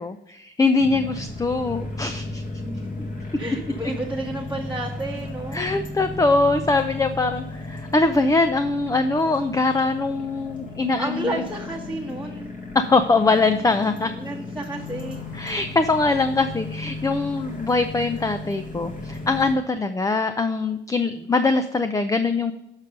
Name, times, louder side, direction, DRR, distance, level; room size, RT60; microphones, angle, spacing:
voice 1, 0.0-2.4 3.5-3.6 5.5-11.4 12.7-14.1 15.3-22.5, left 3 dB, 15° left, 9 dB, 0.5 m, -22 dB
sound 1, 0.8-19.5, left 2 dB, 45° left, 2.2 m, -35 dB
voice 2, 3.4-5.6 11.0-12.5 14.1-15.2, right 2 dB, 5° right, -2 dB, 1.2 m, -31 dB
7.2 x 5.3 x 5.3 m, 0.87 s
cardioid pair, 90°, 20 cm